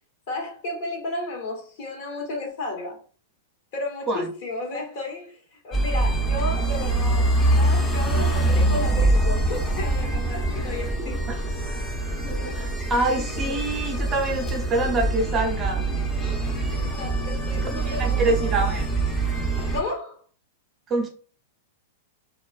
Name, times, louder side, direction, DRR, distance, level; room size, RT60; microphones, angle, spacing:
voice 1, 0.3-3.0 3.7-11.2 16.8-18.5 19.7-20.2, left 2 dB, 60° left, 1.1 m, -33 dB
sound 1, 5.7-19.8, right 2 dB, 20° left, 0.6 m, -24 dB
voice 2, 12.5-15.8 17.6-18.9 20.9-21.1, right 2 dB, 25° right, 0.5 m, -26 dB
2.4 x 2.3 x 2.3 m
hypercardioid pair, 120°, 0 cm